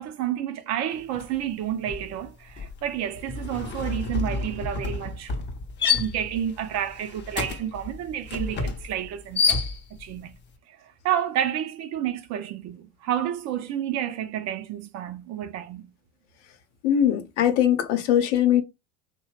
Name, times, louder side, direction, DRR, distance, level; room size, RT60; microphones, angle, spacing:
voice 1, 0.0-5.4 5.8-9.6 10.0-10.4 10.7-15.9, right 10 dB, 45° right, 0.5 m, -30 dB
sound 1, 1.1-1.4 1.7-10.2, left 5 dB, 30° left, 0.6 m, -29 dB
voice 2, 16.8-18.6, left 10 dB, 65° left, 0.8 m, -21 dB
2.7 x 2.1 x 3.0 m
hypercardioid pair, 75°, 39 cm